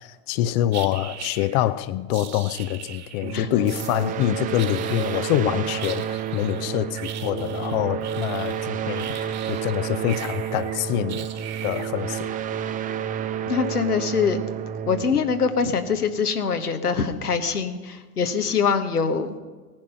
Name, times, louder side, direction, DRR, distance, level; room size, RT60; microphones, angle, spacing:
voice 1, 0.0-11.3 11.6-12.3, left 14 dB, 40° left, 15 dB, 0.6 m, -25 dB
sound 1, 0.7-1.7 2.1-3.4 3.7-4.3 4.6-5.4 5.8-9.8 10.1-12.2, right 10 dB, 35° right, 1.7 m, -40 dB
sound 2, 3.2-16.6, right 9 dB, 20° right, 0.5 m, -30 dB
voice 2, 13.4-14.4 14.9-19.4, left 6 dB, 85° left, 7 dB, 1.3 m, -24 dB
18.0 x 10.5 x 5.5 m, 1.3 s
figure-of-eight pair, 90°, 44 cm